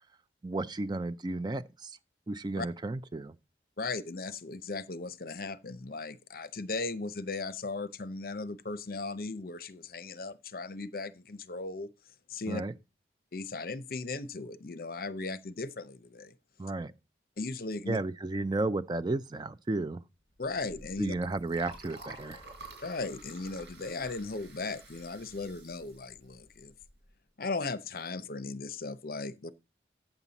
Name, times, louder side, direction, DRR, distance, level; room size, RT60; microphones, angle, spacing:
voice 1, 0.4-1.9 2.3-3.3 12.5-12.7 16.6-16.9 17.9-20.0 21.0-22.4, right 2 dB, 25° right, 0.4 m, -33 dB
voice 2, 3.8-11.9 12.3-12.6 13.3-16.3 17.4-18.0 20.4-21.1 22.8-26.7 27.4-29.5, left 3 dB, 55° left, 0.7 m, -37 dB
Liquid, 20.4-27.1, right 2 dB, 85° right, 5.2 m, -51 dB
9.0 x 7.3 x 4.0 m
head